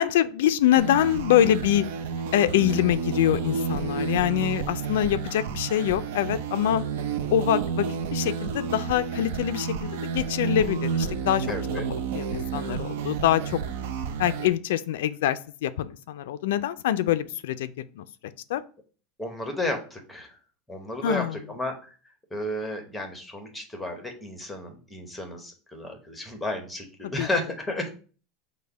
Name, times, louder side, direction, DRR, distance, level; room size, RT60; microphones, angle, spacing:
voice 1, 0.0-1.8 2.3-6.8 7.3-7.9 8.1-11.5 12.1-13.6 14.2-17.7 18.0-18.1 18.5-18.6 21.0-21.3 27.2-27.3, left 12 dB, 90° left, 12 dB, 0.3 m, -24 dB
sound 1, 0.8-14.5, right 6 dB, 75° right, 0.5 m, -30 dB
voice 2, 11.5-11.8 19.2-20.4 20.7-22.0 22.3-27.9, left 1 dB, 5° left, 3 dB, 0.8 m, -32 dB
5.3 x 2.1 x 4.6 m, 0.38 s
supercardioid pair, 165°, 0 cm